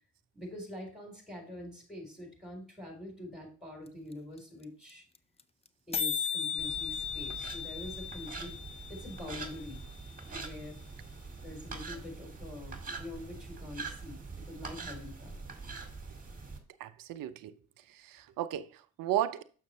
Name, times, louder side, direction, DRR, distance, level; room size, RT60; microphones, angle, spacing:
voice 1, 0.3-5.0 5.9-8.6 8.9-9.9 10.3-10.8 11.4-15.5, left 1 dB, ahead, 3.9 m, -45 dB
sound 1, 3.9-4.0 4.1-4.2 4.4-4.6 4.9-5.0 5.1-5.4 5.7-5.8 5.9-9.9, left 7 dB, 15° left, 0.5 m, -36 dB
sound 2, 6.6-16.6, right 4 dB, 20° right, 1.9 m, -44 dB
voice 2, 16.8-17.5 17.9-19.4, right 12 dB, 60° right, 0.7 m, -34 dB
6.5 x 6.5 x 3.1 m
hypercardioid pair, 55°, 37 cm